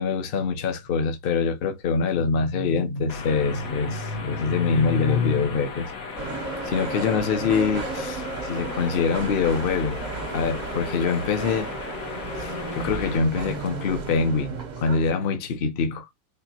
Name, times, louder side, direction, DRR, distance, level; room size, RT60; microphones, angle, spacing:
voice 1, 0.0-5.9 6.6-10.0 10.3-11.7 12.3-16.1, left 5 dB, 45° left, 0.8 m, -24 dB
sound 1, 3.1-13.2, left 4 dB, 65° left, 1.4 m, -37 dB
sound 2, 6.2-15.1, right 3 dB, 45° right, 0.6 m, -33 dB
4.3 x 2.9 x 2.7 m
omnidirectional pair, 1.6 m